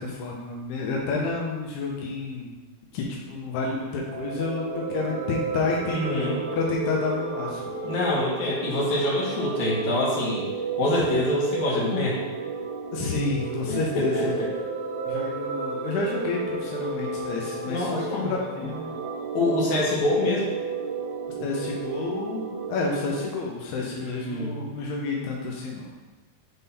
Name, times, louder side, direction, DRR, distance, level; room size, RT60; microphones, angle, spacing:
voice 1, 0.0-2.5 2.9-7.6 12.9-14.3 15.1-18.8 21.4-25.9, left 3 dB, 85° left, -2 dB, 2.9 m, -30 dB
sound 1, 3.9-23.2, right 4 dB, 90° right, 2.9 m, -33 dB
voice 2, 5.9-6.4 7.8-10.5 10.8-12.2 13.7-14.5 17.6-18.3 19.3-20.5 24.0-24.6, left 1 dB, 55° left, -6 dB, 2.5 m, -25 dB
8.1 x 3.8 x 4.1 m, 1.2 s
omnidirectional pair, 4.6 m